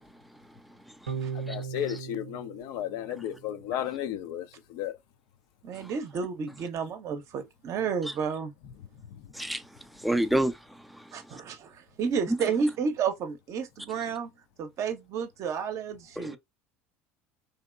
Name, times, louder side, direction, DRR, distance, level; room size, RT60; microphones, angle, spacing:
voice 1, 0.9-2.0 5.7-5.9 8.1-8.2 9.3-11.4 12.3-12.4 16.2-16.4, right 1 dB, ahead, 0.4 m, -31 dB
sound 1, 1.1-3.7, right 6 dB, 80° right, 0.4 m, -38 dB
voice 2, 1.5-5.0 9.1-9.3, left 11 dB, 60° left, 0.4 m, -34 dB
voice 3, 5.6-8.5 11.1-14.3 14.6-16.4, right 6 dB, 45° right, 0.6 m, -31 dB
2.8 x 2.7 x 2.2 m
figure-of-eight pair, 65°, 7 cm